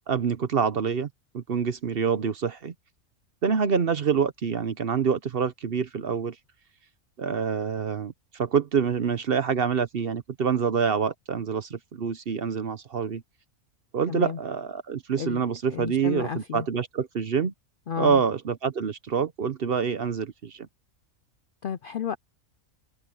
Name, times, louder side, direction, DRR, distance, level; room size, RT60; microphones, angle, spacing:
voice 1, 0.1-1.1 1.3-2.7 3.4-6.3 7.2-13.2 13.9-17.5 18.0-20.7, right 6 dB, 50° right, 0.9 m, -26 dB
voice 2, 14.1-14.4 15.2-15.4 15.7-16.7 17.9-18.2 21.6-22.2, left 7 dB, 60° left, 0.5 m, -32 dB
omnidirectional pair, 1.5 m